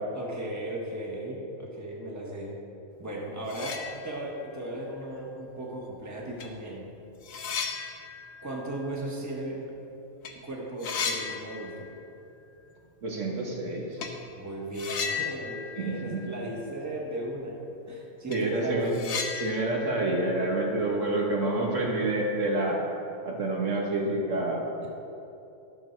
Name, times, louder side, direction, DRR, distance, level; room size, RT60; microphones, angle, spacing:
voice 1, 0.1-2.6 3.0-6.9 8.4-9.6 10.4-11.9 14.3-17.6 17.9-19.0, right 1 dB, 15° right, -3 dB, 1.4 m, -36 dB
sound 1, 3.1-3.2 3.4-4.5 4.9-5.0 5.9-6.0 6.4-9.9 10.1-10.3 10.6-12.2 12.4-12.5 14.0-14.2 14.7-16.9 17.1-17.2 17.7-17.8 18.1-21.3, left 6 dB, 90° left, 1.3 m, -36 dB
voice 2, 13.0-14.0 15.8-16.2 18.3-18.9 19.4-22.8 23.2-24.6, right 2 dB, 70° right, -2 dB, 1.7 m, -28 dB
12.5 x 6.7 x 4.5 m, 2.9 s
omnidirectional pair, 1.4 m